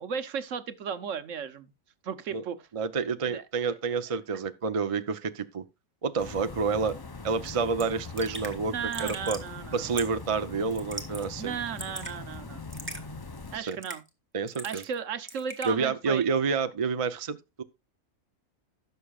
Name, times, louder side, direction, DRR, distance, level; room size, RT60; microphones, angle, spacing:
voice 1, 0.0-1.7 2.0-2.6 3.3-3.4 8.7-9.9 11.4-12.6 13.5-14.0 14.6-16.3, right 7 dB, 65° right, 1.2 m, -35 dB
voice 2, 2.7-5.6 6.0-7.0 7.2-8.7 9.0-9.4 9.7-11.6 13.5-13.8 14.3-14.8 15.6-17.6, right 5 dB, 40° right, 0.5 m, -29 dB
sound 1, 6.2-13.6, left 4 dB, 30° left, 0.4 m, -42 dB
Raindrop / Drip, 7.4-7.5 7.8-7.9 8.2-8.6 8.9-9.5 10.0-10.3 10.7-11.3 11.5-12.1 12.7-13.0 13.7-14.1 14.5-15.0 15.3-15.7, right 1 dB, 10° right, 1.7 m, -39 dB
16.0 x 6.7 x 2.4 m
omnidirectional pair, 1.5 m